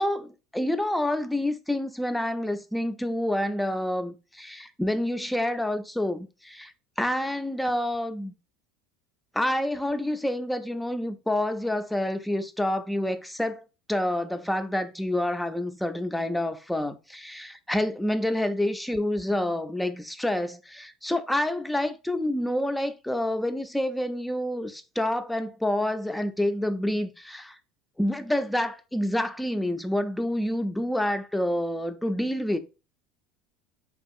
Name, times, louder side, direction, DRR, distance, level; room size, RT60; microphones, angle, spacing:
voice 1, 0.0-8.3 9.3-13.6 13.9-27.6 28.0-32.6, left 1 dB, 5° left, 0.3 m, -28 dB
2.6 x 2.3 x 2.4 m
supercardioid pair, 110°, 0 cm